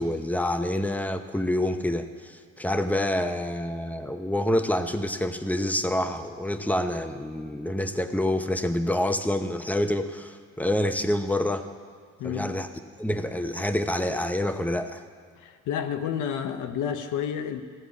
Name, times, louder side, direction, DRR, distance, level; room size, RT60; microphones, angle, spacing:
voice 1, 0.0-11.7 12.2-12.7 13.0-15.0, left 1 dB, 5° left, 8 dB, 0.7 m, -27 dB
voice 2, 12.2-12.5 15.4-17.6, left 8 dB, 85° left, 8 dB, 0.8 m, -30 dB
14.5 x 4.9 x 8.2 m, 2.1 s
cardioid pair, 90°, 30 cm